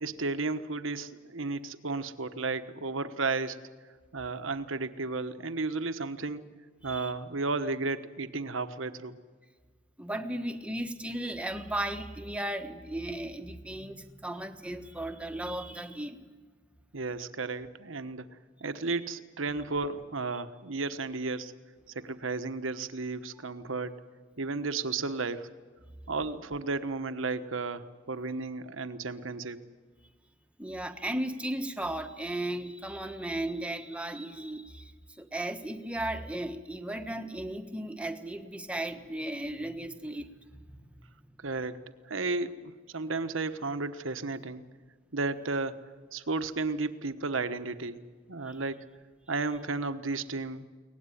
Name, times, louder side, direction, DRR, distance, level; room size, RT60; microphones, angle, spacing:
voice 1, 0.0-3.6 4.1-6.4 6.8-9.2 16.9-18.2 18.6-21.5 21.9-24.0 24.4-25.5 26.1-29.6 41.4-41.8 42.0-44.6 45.1-45.8 46.1-48.0 48.3-48.8 49.3-50.7, right 3 dB, 70° right, 11 dB, 1.2 m, -33 dB
voice 2, 6.8-7.1 10.0-16.3 20.3-20.4 30.6-40.8 48.5-48.6, right 1 dB, 5° right, 6 dB, 1.3 m, -36 dB
23.5 x 18.5 x 9.9 m, 1.5 s
head